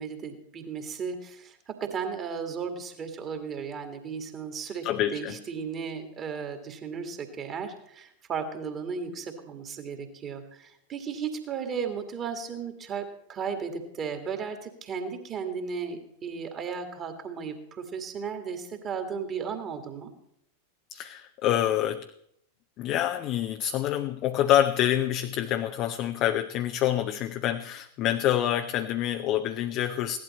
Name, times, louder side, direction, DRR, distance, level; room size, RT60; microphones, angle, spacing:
voice 1, 0.0-20.1, right 6 dB, 30° right, 5 dB, 2.1 m, -35 dB
voice 2, 4.8-5.3 20.9-22.1 22.8-30.2, left 11 dB, 40° left, 8 dB, 0.6 m, -26 dB
16.5 x 11.5 x 4.3 m, 0.73 s
figure-of-eight pair, 90°, 0 cm